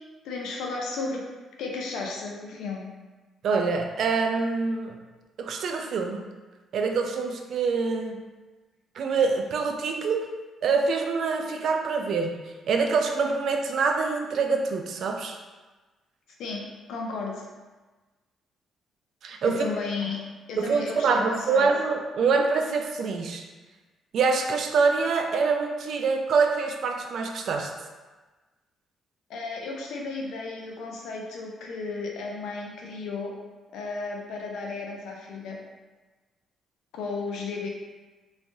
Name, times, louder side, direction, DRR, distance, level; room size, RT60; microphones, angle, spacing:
voice 1, 0.2-1.2 1.6-2.9 16.4-17.5 19.4-20.2 20.5-21.7 29.3-33.3 33.7-35.6 36.9-37.7, left 3 dB, 85° left, -1 dB, 0.5 m, -34 dB
voice 2, 3.4-5.0 5.4-6.2 6.7-8.2 9.0-10.3 10.6-12.4 12.7-15.4 19.2-19.7 20.6-23.4 24.1-27.7, right 4 dB, 65° right, 4 dB, 0.3 m, -25 dB
3.2 x 2.2 x 2.6 m, 1.2 s
cardioid pair, 90°, 0 cm